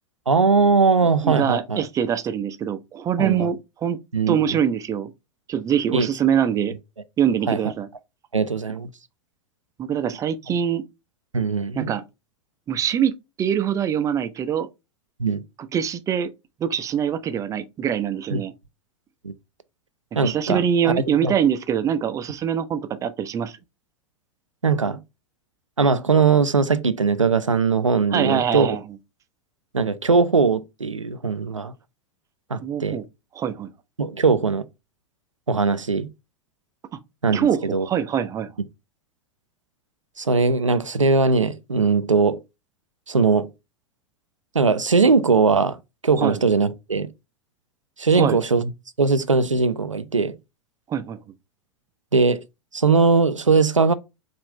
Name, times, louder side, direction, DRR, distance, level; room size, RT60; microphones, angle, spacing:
voice 1, 0.3-1.8 3.2-3.5 4.1-4.6 5.9-6.1 7.5-7.6 8.3-8.9 11.3-11.9 15.2-15.4 18.3-18.4 19.2-19.3 20.2-20.9 21.2-21.3 24.6-25.0 25.8-28.8 29.7-31.7 32.5-33.0 34.0-34.6 35.5-36.1 37.2-37.4 37.7-37.9 40.2-42.4 43.1-43.5 44.5-45.8 46.0-47.1 48.0-48.7 49.0-50.4 52.1-52.4 52.7-53.9, right 4 dB, 90° right, 0.5 m, -20 dB
voice 2, 1.2-4.0 4.3-5.1 5.5-6.7 7.2-7.9 9.8-10.8 11.8-12.0 12.7-13.1 13.4-14.7 15.7-16.3 16.6-18.5 20.2-23.6 28.1-28.8 32.6-33.0 33.4-33.7 37.3-38.5 46.2-46.4 48.1-48.4 50.9-51.2, right 8 dB, 20° right, 0.5 m, -23 dB
5.0 x 2.5 x 3.2 m
figure-of-eight pair, 95°, 16 cm